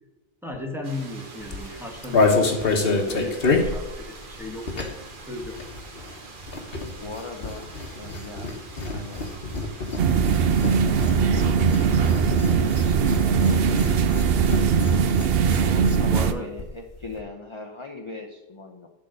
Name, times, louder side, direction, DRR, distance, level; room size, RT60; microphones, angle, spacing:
voice 1, 0.4-5.0 5.3-5.6 16.0-16.5, left 1 dB, ahead, 1 dB, 1.5 m, -36 dB
sound 1, 0.8-15.1, right 3 dB, 50° right, 1.5 m, -44 dB
sound 2, 1.4-5.1 5.4-16.3 16.6-16.7 16.9-17.2, left 3 dB, 60° left, 1.5 m, -27 dB
voice 2, 7.0-8.5 8.9-9.3 10.8-14.2 15.3-18.9, left 3 dB, 30° left, 1 dB, 0.9 m, -40 dB
sound 3, 10.0-16.3, right 6 dB, 65° right, 0.9 m, -20 dB
11.0 x 4.2 x 6.6 m, 1.1 s
omnidirectional pair, 1.1 m